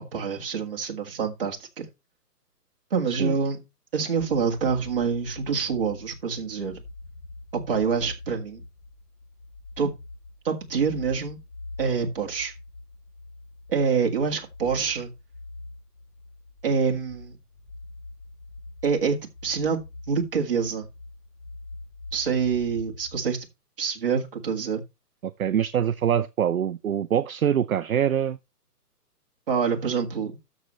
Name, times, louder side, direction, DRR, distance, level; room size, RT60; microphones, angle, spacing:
voice 1, 0.1-1.9 2.9-3.6 3.9-6.8 7.5-8.6 9.8-9.9 10.4-11.4 11.8-12.5 13.7-15.1 16.6-17.3 18.8-20.9 22.1-23.5 23.8-24.8 29.5-30.4, right 6 dB, 35° right, 1.9 m, -26 dB
sound 1, 4.2-23.4, left 2 dB, 80° left, 3.7 m, -44 dB
voice 2, 25.2-28.4, right 9 dB, 60° right, 0.6 m, -24 dB
13.0 x 6.5 x 3.1 m
hypercardioid pair, 175°, 48 cm